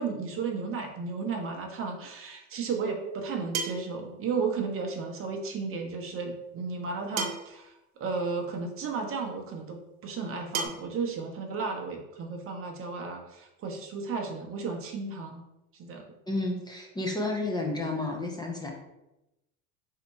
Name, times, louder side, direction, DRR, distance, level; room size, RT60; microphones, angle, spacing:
voice 1, 0.0-15.4 15.8-16.1, right 4 dB, 35° right, 2 dB, 0.8 m, -34 dB
sound 1, 1.8-1.9 3.5-4.0 5.5-5.6 7.2-7.6 8.8-8.9 10.5-10.7, right 5 dB, 70° right, 0.9 m, -32 dB
voice 2, 16.3-18.7, left 2 dB, 10° left, 0 dB, 0.7 m, -31 dB
4.0 x 2.8 x 4.5 m, 0.92 s
supercardioid pair, 115°, 38 cm